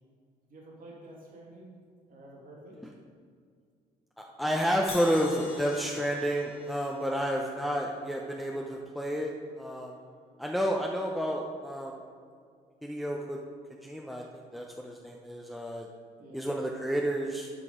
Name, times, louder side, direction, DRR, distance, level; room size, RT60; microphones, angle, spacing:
voice 1, 0.5-1.7 2.1-2.8 16.2-16.5, right 1 dB, 55° right, -3 dB, 2.4 m, -49 dB
voice 2, 4.2-9.3 9.6-10.0 10.4-12.0 12.8-13.4 13.8-15.9 16.3-17.5, equal, ahead, -1 dB, 0.7 m, -30 dB
Crash cymbal, 4.9-8.9, left 3 dB, 35° left, 1.7 m, -46 dB
9.9 x 5.1 x 5.0 m, 2.1 s
cardioid pair, 85°, 17 cm